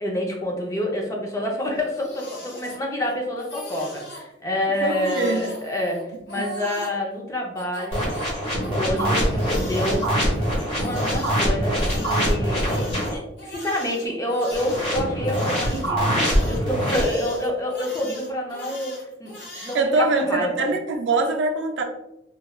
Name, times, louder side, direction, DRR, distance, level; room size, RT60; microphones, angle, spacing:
voice 1, 0.0-8.1 8.7-10.1 10.8-12.9 13.1-19.3 19.6-20.7, left 1 dB, 20° left, -1 dB, 0.5 m, -28 dB
Crying sobbing, 1.7-3.1 3.4-4.2 4.7-7.0 7.6-11.4 11.8-19.8, equal, 90° left, 1.0 m, -39 dB
voice 2, 4.8-5.5 6.4-6.5 19.5-21.8, right 3 dB, 85° right, 4 dB, 0.4 m, -23 dB
sound 1, 7.9-13.2 14.5-17.0, equal, 35° left, 1.2 m, -23 dB
3.1 x 2.3 x 2.2 m, 0.88 s
head